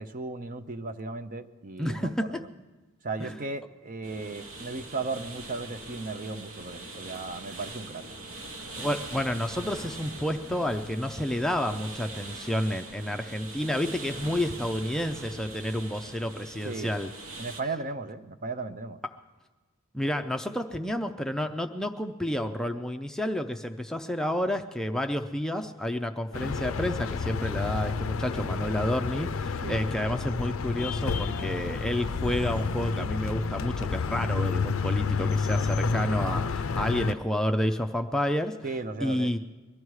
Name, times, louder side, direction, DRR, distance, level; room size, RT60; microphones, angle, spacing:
voice 1, 0.0-2.5 3.0-8.0 16.6-16.9 17.4-19.0 29.6-30.2 38.6-39.3, right 3 dB, 40° right, 11 dB, 0.6 m, -36 dB
voice 2, 1.8-2.4 3.2-3.4 8.8-17.1 19.9-38.6 39.0-39.4, left 1 dB, 5° left, 6 dB, 0.5 m, -30 dB
sound 1, 4.0-17.6, right 2 dB, 65° right, 1.2 m, -42 dB
sound 2, 26.3-37.1, left 4 dB, 65° left, 0.5 m, -30 dB
22.0 x 12.5 x 4.8 m, 1.2 s
head